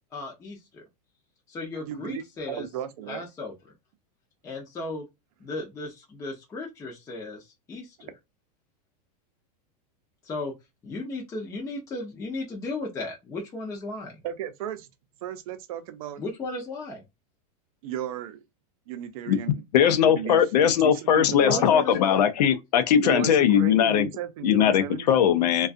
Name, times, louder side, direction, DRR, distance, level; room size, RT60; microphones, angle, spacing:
voice 1, 0.1-0.8 1.5-2.7 3.1-3.5 4.4-5.1 5.4-8.1 10.2-10.5 10.8-14.2 16.2-17.0 21.4-22.3, left 2 dB, 15° left, 0.6 m, -35 dB
voice 2, 1.8-3.3 14.2-14.9 15.2-16.2 17.8-18.4 18.9-21.8 23.0-25.3, right 9 dB, 55° right, 0.6 m, -35 dB
voice 3, 19.7-24.1 24.4-25.7, left 9 dB, 75° left, 0.6 m, -20 dB
2.4 x 2.3 x 2.4 m
supercardioid pair, 150°, 21 cm